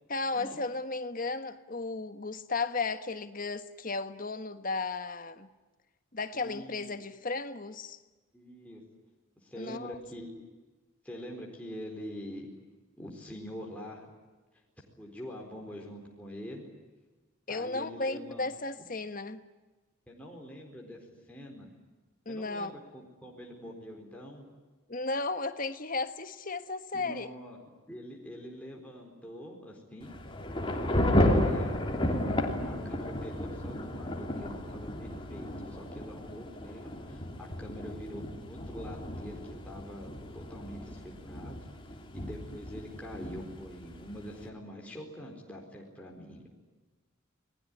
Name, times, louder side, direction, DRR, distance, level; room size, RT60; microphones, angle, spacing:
voice 1, 0.1-5.5 6.1-8.0 9.6-10.0 17.5-19.4 22.2-22.7 24.9-27.3, left 3 dB, 40° left, 1.4 m, -34 dB
voice 2, 6.3-7.0 8.3-8.8 9.4-10.5 11.0-12.5 13.0-14.1 15.0-16.7 17.5-18.5 20.1-21.7 22.3-24.4 26.9-27.6 27.9-30.1 30.7-31.9 32.6-40.1 40.3-41.7 42.1-46.5, equal, 5° left, 4.2 m, -45 dB
Thunder / Rain, 30.0-44.5, left 1 dB, 25° left, 3.0 m, -33 dB
28.5 x 20.5 x 9.8 m
head